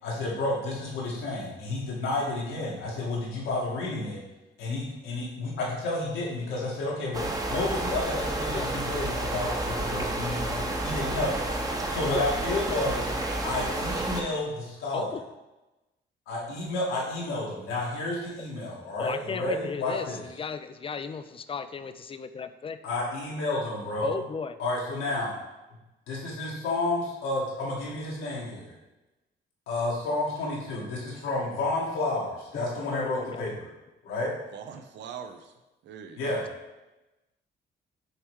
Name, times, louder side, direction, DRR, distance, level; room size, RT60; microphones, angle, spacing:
voice 1, 0.0-4.2 4.6-11.4 11.9-13.1 13.4-15.1 16.3-20.2 22.8-24.1 24.6-25.4 26.1-28.7 29.7-33.7 34.0-34.3 36.2-36.4, left 2 dB, 90° left, -5 dB, 1.9 m, -31 dB
sound 1, 7.1-14.2, right 1 dB, 20° right, 0.9 m, -30 dB
voice 2, 11.0-11.5 34.5-35.5 35.8-36.2, right 7 dB, 65° right, 7 dB, 0.6 m, -42 dB
voice 3, 19.0-22.8 24.0-24.6 32.5-32.7 32.9-33.5, left 5 dB, 30° left, 11 dB, 0.4 m, -35 dB
6.5 x 3.2 x 4.7 m, 1.0 s
cardioid pair, 90°, 20 cm